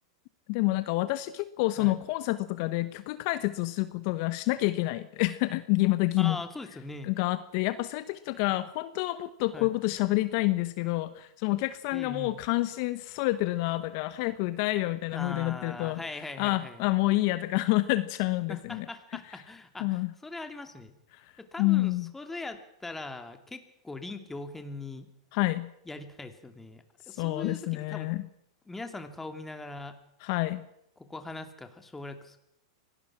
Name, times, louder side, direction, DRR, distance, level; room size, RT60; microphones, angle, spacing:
voice 1, 0.5-6.4 7.0-16.0 16.4-18.9 19.3-19.4 19.8-20.1 21.6-22.1 25.3-25.7 27.1-28.3 30.2-30.6, left 19 dB, 50° left, 13 dB, 1.0 m, -28 dB
voice 2, 6.2-7.1 9.5-9.7 11.9-12.4 15.1-16.8 18.5-20.9 21.4-25.1 25.9-28.1 28.7-29.9 31.0-32.4, left 2 dB, 10° left, 7 dB, 2.4 m, -41 dB
24.5 x 18.0 x 6.0 m, 0.79 s
hypercardioid pair, 120°, 3 cm